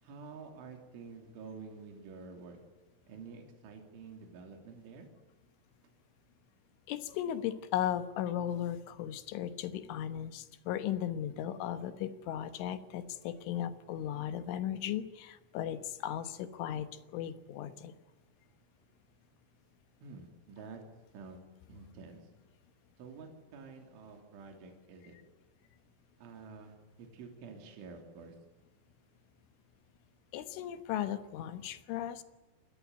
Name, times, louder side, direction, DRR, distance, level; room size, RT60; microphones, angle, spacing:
voice 1, 0.0-2.6 3.1-5.1 20.0-20.8 21.1-21.4 21.7-22.3 23.0-25.2 26.2-28.4, right 4 dB, 70° right, 3 dB, 5.5 m, -49 dB
voice 2, 6.9-17.9 30.3-32.2, left 11 dB, 75° left, 11 dB, 3.6 m, -36 dB
27.5 x 20.5 x 9.3 m, 1.1 s
omnidirectional pair, 5.8 m